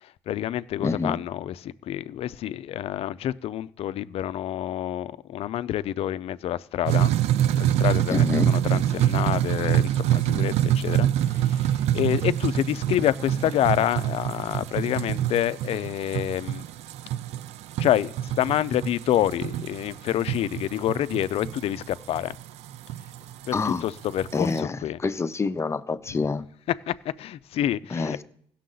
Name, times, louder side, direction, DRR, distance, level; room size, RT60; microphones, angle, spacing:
voice 1, 0.0-7.1 7.5-16.6 17.8-22.4 23.5-25.0 26.9-28.2, left 12 dB, 65° left, 0.4 m, -28 dB
voice 2, 0.8-1.2 8.1-8.5 23.5-23.8 24.3-26.5 27.9-28.2, left 4 dB, 25° left, 0.7 m, -27 dB
sound 1, 6.9-24.6, right 12 dB, 75° right, 0.4 m, -26 dB
16.5 x 6.5 x 3.9 m
cardioid pair, 95°, 11 cm